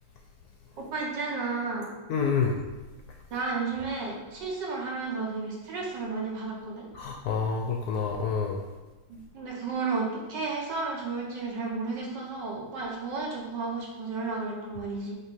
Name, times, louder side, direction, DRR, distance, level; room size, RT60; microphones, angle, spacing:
voice 1, 0.8-1.9 3.3-6.9 9.1-15.1, right 4 dB, 65° right, -2 dB, 1.7 m, -32 dB
voice 2, 2.1-2.6 6.9-8.6, left 5 dB, 70° left, 1 dB, 0.9 m, -28 dB
7.4 x 3.0 x 4.2 m, 1.1 s
omnidirectional pair, 2.1 m